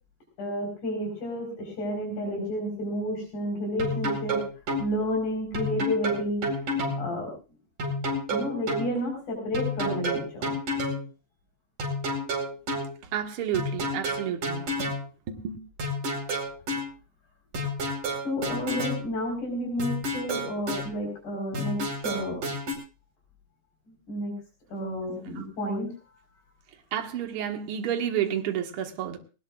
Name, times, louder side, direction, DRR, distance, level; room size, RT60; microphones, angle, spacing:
voice 1, 0.4-4.4 4.8-7.3 8.3-10.5 18.2-22.4 23.9-24.3 24.7-25.9, equal, 60° left, 6.0 m, -31 dB
sound 1, 3.8-4.9 5.5-7.0 7.8-8.9 9.5-11.0 11.8-12.9 13.5-15.0 15.8-16.9 17.5-19.0 19.8-20.9 21.5-22.7, equal, 65° right, 6.0 m, -29 dB
voice 2, 13.1-14.7 15.3-15.6 25.4-25.5 26.9-29.2, right 9 dB, 50° right, 2.0 m, -30 dB
20.5 x 19.0 x 2.4 m
omnidirectional pair, 3.9 m